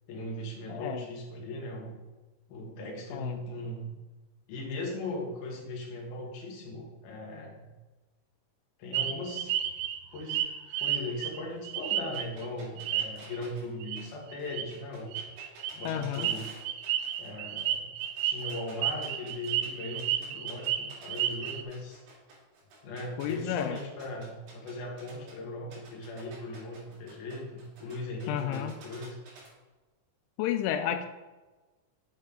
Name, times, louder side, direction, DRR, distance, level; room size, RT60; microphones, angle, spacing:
voice 1, 0.1-2.0 2.5-3.9 4.5-7.7 8.8-9.6 10.1-10.4 10.8-15.2 15.7-16.5 17.2-17.9 18.2-22.0 22.8-29.2, left 1 dB, 60° left, -1 dB, 3.1 m, -38 dB
voice 2, 0.7-1.1 3.1-3.4 15.8-16.3 23.2-23.8 28.3-28.7 30.4-31.1, left 10 dB, 90° left, 8 dB, 2.9 m, -31 dB
sound 1, 8.9-12.5 12.8-13.4 13.8-14.0 14.3-14.7 15.1-21.6, right 11 dB, 85° right, 2.5 m, -31 dB
sound 2, 12.1-17.3 17.6-19.7 20.0-25.3 25.7-29.5, right 3 dB, 65° right, 4.3 m, -52 dB
8.0 x 7.4 x 3.7 m, 1.2 s
omnidirectional pair, 5.3 m